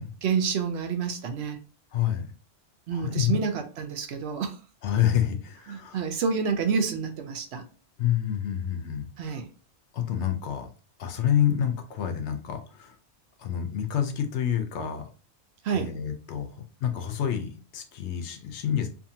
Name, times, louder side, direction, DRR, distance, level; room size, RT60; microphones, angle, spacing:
voice 1, 0.2-1.6 2.9-4.6 5.7-7.7 9.2-9.5 15.6-15.9, right 6 dB, 70° right, 0.8 m, -28 dB
voice 2, 1.9-2.3 2.9-3.4 4.8-6.0 8.0-9.4 9.9-10.7 11.0-13.0 13.4-15.0 15.7-16.5 16.8-18.9, left 10 dB, 75° left, 0.9 m, -28 dB
2.6 x 2.5 x 2.7 m
omnidirectional pair, 1.2 m